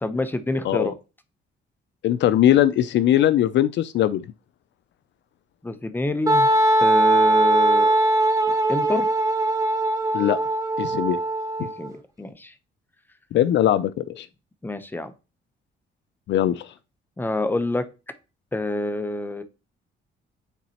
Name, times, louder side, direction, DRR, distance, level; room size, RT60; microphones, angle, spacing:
voice 1, 0.0-0.9 5.6-6.5 6.8-8.1 8.7-9.1 11.6-12.5 14.6-15.1 17.2-17.9 18.5-19.4, left 2 dB, 10° left, 0.7 m, -27 dB
voice 2, 2.0-4.2 10.1-10.4 10.8-11.2 13.3-14.3 16.3-16.7, left 12 dB, 65° left, 0.4 m, -20 dB
Wind instrument woodwind instrument, 6.3-11.9, right 1 dB, 15° right, 1.4 m, -20 dB
9.1 x 4.0 x 2.9 m
cardioid pair, 90°, 20 cm